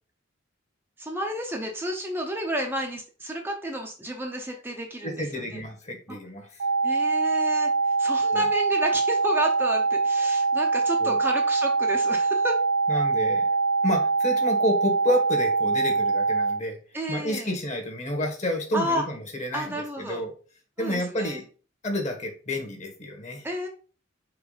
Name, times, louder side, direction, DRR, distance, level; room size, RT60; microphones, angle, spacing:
voice 1, 1.0-5.6 6.1-6.2 6.8-12.6 16.9-17.6 18.7-19.0 19.5-20.2 20.8-21.4 23.4-23.7, equal, 10° right, 1 dB, 0.8 m, -31 dB
voice 2, 5.0-6.6 8.3-8.4 11.0-11.2 12.9-16.8 17.1-20.3 20.8-21.4 21.8-23.5, equal, 35° left, 4 dB, 1.6 m, -30 dB
sound 1, 6.6-16.6, right 4 dB, 65° right, 0.4 m, -23 dB
4.8 x 4.7 x 5.0 m, 0.39 s
head